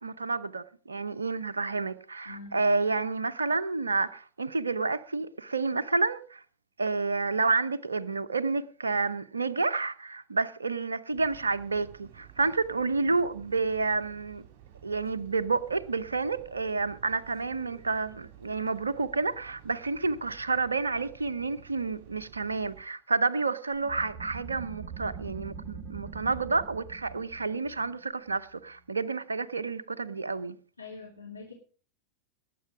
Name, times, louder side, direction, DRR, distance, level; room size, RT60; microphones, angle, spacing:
voice 1, 0.0-6.4 6.8-14.4 14.8-30.6, right 3 dB, 75° right, 0.7 m, -30 dB
voice 2, 2.2-2.6 30.8-31.5, left 4 dB, 80° left, 2.6 m, -44 dB
sound 1, 11.1-22.8, right 11 dB, 45° right, 3.8 m, -53 dB
sound 2, 23.7-29.1, right 6 dB, 25° right, 2.0 m, -43 dB
18.5 x 8.5 x 5.0 m
figure-of-eight pair, 90°, 0 cm